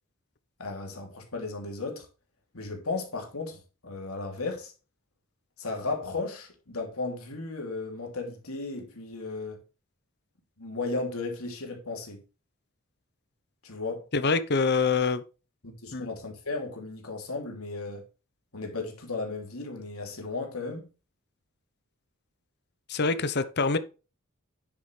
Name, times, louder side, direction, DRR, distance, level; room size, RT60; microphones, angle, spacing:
voice 1, 0.6-2.1 2.5-4.7 5.6-9.6 10.6-12.2 13.6-14.1 15.6-18.0 18.5-20.9, left 3 dB, 85° left, 3.0 m, -35 dB
voice 2, 14.1-15.2 15.9-16.1 22.9-23.8, left 4 dB, 50° left, 0.9 m, -25 dB
9.8 x 7.7 x 3.3 m
head